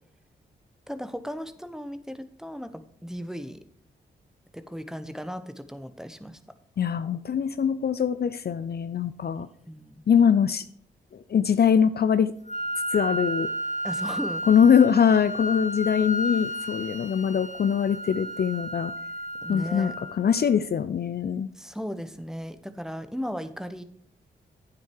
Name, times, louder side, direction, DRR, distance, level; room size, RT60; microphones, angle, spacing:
voice 1, 0.9-3.6 4.5-6.4 9.3-10.0 13.8-14.5 19.4-19.9 21.6-23.8, equal, ahead, 11 dB, 1.0 m, -36 dB
voice 2, 6.8-9.5 10.1-10.6 11.1-12.3 12.9-13.5 14.5-18.9 19.5-21.5, left 7 dB, 50° left, 13 dB, 0.5 m, -22 dB
Wind instrument woodwind instrument, 12.5-20.4, equal, 35° left, 1.6 m, -32 dB
9.2 x 7.6 x 4.8 m, 0.65 s
supercardioid pair, 40°, 21 cm